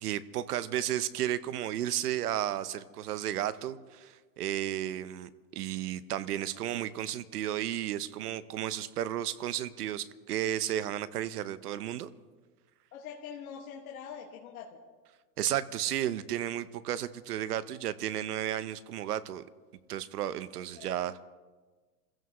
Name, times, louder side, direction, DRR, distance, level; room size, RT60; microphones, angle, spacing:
voice 1, 0.0-12.1 15.4-19.4 19.9-21.2, right 12 dB, 75° right, 15 dB, 0.9 m, -33 dB
voice 2, 12.9-14.7 20.8-20.9, left 7 dB, 60° left, -2 dB, 2.0 m, -43 dB
29.0 x 15.5 x 3.1 m, 1.3 s
supercardioid pair, 175°, 47 cm